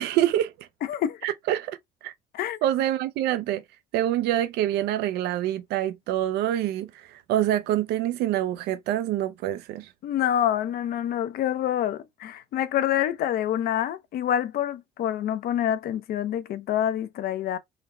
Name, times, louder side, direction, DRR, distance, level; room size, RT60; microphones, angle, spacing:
voice 1, 0.0-0.7 1.2-1.8 2.0-2.1 2.6-3.6 3.9-9.9, right 12 dB, 75° right, 0.4 m, -26 dB
voice 2, 0.8-1.2 2.3-2.6 10.0-17.6, left 10 dB, 65° left, 0.6 m, -27 dB
3.9 x 2.1 x 4.1 m
cardioid pair, 110°, 17 cm